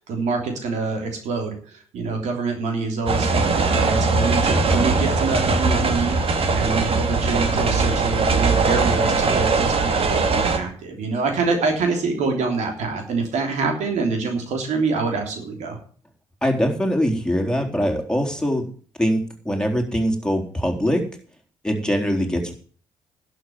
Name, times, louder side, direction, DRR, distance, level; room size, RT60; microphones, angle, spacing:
voice 1, 0.0-15.8, right 4 dB, 65° right, 4 dB, 3.2 m, -25 dB
sound 1, 3.1-10.6, right 4 dB, 50° right, 2.3 m, -20 dB
voice 2, 16.4-18.6 19.0-21.0 21.6-22.5, equal, 5° left, 3 dB, 3.8 m, -22 dB
11.5 x 6.7 x 9.3 m, 0.43 s
hypercardioid pair, 50°, 13 cm